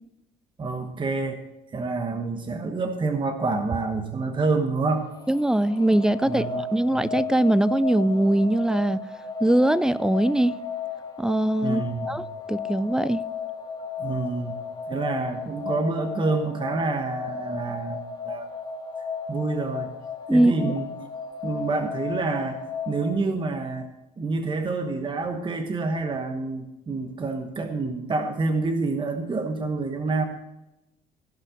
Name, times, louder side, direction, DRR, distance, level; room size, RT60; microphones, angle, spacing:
voice 1, 0.6-1.4 1.7-5.1 6.2-6.6 11.6-12.2 14.0-14.6 14.9-18.5 19.3-20.0 20.3-20.8 21.4-23.9 24.2-30.3, right 3 dB, 30° right, 1.1 m, -27 dB
sound 1, 4.9-23.1, left 5 dB, 30° left, 2.3 m, -35 dB
voice 2, 5.3-9.0 9.4-10.6 11.2-12.2 12.5-13.2 20.3-20.7, right 1 dB, 5° right, 0.3 m, -22 dB
16.0 x 5.5 x 6.3 m
cardioid pair, 110°, 17 cm